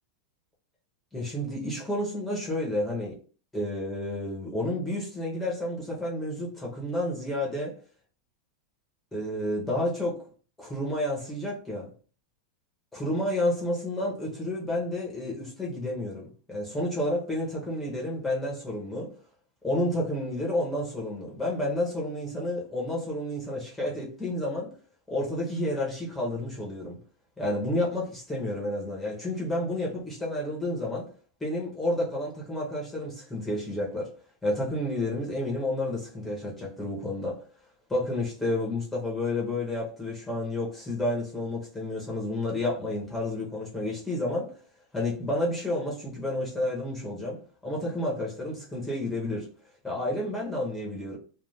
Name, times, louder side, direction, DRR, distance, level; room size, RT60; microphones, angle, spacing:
voice 1, 1.1-3.1 3.5-7.8 9.1-10.3 10.6-11.9 12.9-19.1 19.6-24.7 25.1-27.0 27.4-31.1 31.4-34.1 34.4-37.4 37.9-44.5 44.9-49.5 49.8-51.2, left 1 dB, 5° left, 0.8 m, -30 dB
2.5 x 2.3 x 3.3 m
supercardioid pair, 145°, 3 cm